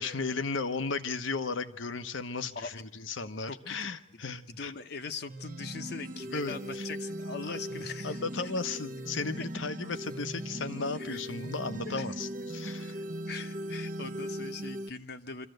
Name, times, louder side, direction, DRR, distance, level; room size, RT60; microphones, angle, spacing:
voice 1, 0.0-4.7 6.3-6.9 7.5-7.6 8.0-12.9, left 4 dB, 90° left, 10 dB, 1.1 m, -35 dB
voice 2, 3.5-4.2 4.5-8.5 11.0-11.2 11.8-12.0 13.3-15.5, left 4 dB, 55° left, 7 dB, 0.9 m, -41 dB
sound 1, 5.3-14.9, right 1 dB, 45° right, 1.0 m, -39 dB
25.0 x 14.5 x 7.9 m, 0.78 s
head